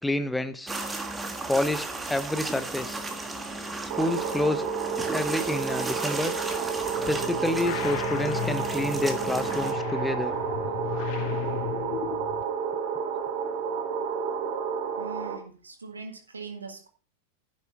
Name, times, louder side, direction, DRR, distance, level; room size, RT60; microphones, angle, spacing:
voice 1, 0.0-0.7 1.5-3.0 3.9-4.7 5.1-6.3 7.1-10.3, left 1 dB, 5° left, 12 dB, 0.9 m, -28 dB
sound 1, 0.7-9.7, right 2 dB, 10° right, 1.6 m, -35 dB
sound 2, 3.9-15.4, right 6 dB, 50° right, 2.3 m, -31 dB
sound 3, 6.9-12.4, left 14 dB, 45° left, 0.9 m, -35 dB
voice 2, 15.0-16.9, right 4 dB, 75° right, 5 dB, 1.9 m, -41 dB
11.0 x 8.5 x 3.6 m, 0.36 s
figure-of-eight pair, 90°, 0 cm